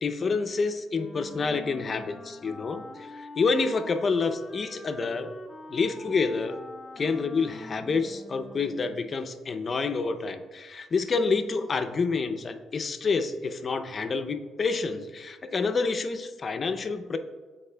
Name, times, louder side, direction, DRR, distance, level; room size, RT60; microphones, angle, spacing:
voice 1, 0.0-5.3 5.7-6.6 7.0-17.2, left 4 dB, 40° left, 7 dB, 0.5 m, -28 dB
Wind instrument woodwind instrument, 0.9-9.2, left 1 dB, 25° left, 0.9 m, -44 dB
11.0 x 4.2 x 2.2 m, 1.4 s
cardioid pair, 90°, 0 cm